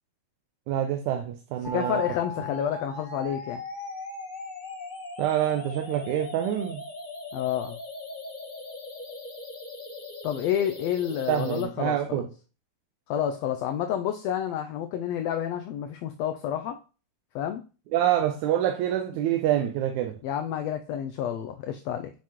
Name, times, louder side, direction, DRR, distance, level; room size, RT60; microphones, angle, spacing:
voice 1, 0.7-2.0 5.2-6.9 11.3-12.3 17.9-20.2, right 11 dB, 80° right, 2.1 m, -26 dB
voice 2, 1.6-3.6 7.3-7.8 10.2-12.2 13.1-16.8 17.3-17.6 20.2-22.1, left 10 dB, 85° left, 1.5 m, -29 dB
sound 1, 1.6-11.6, left 2 dB, 40° left, 0.6 m, -39 dB
7.3 x 5.7 x 3.0 m
omnidirectional pair, 3.4 m